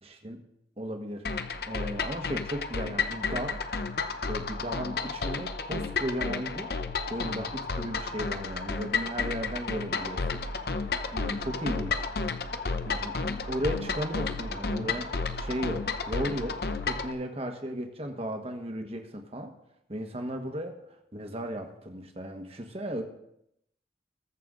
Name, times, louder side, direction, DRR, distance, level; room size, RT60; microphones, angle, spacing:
voice 1, 0.0-0.4 0.8-1.2 1.7-3.6 4.3-6.7 7.1-10.4 11.1-12.1 12.8-15.1 15.4-16.6 16.8-19.5 19.9-20.7 21.1-23.0, equal, 35° right, 4 dB, 1.4 m, -35 dB
sound 1, 1.2-17.1, left 4 dB, 60° left, 0.7 m, -32 dB
21.0 x 7.0 x 3.9 m, 0.77 s
head